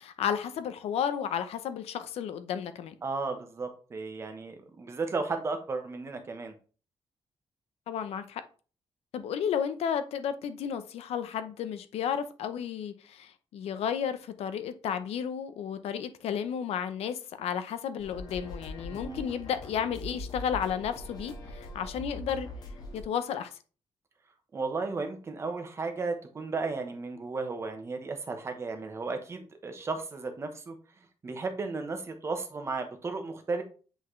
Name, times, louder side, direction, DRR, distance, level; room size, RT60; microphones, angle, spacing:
voice 1, 0.0-2.9 7.9-8.4 9.1-22.5 22.9-23.5, left 8 dB, 85° left, 0.7 m, -33 dB
voice 2, 3.0-6.5 18.9-19.3 24.5-30.8 31.2-33.6, right 3 dB, 25° right, 1.0 m, -34 dB
sound 1, 18.0-23.0, left 2 dB, 40° left, 1.4 m, -42 dB
8.1 x 4.1 x 3.2 m
wide cardioid pair, 175°, 10 cm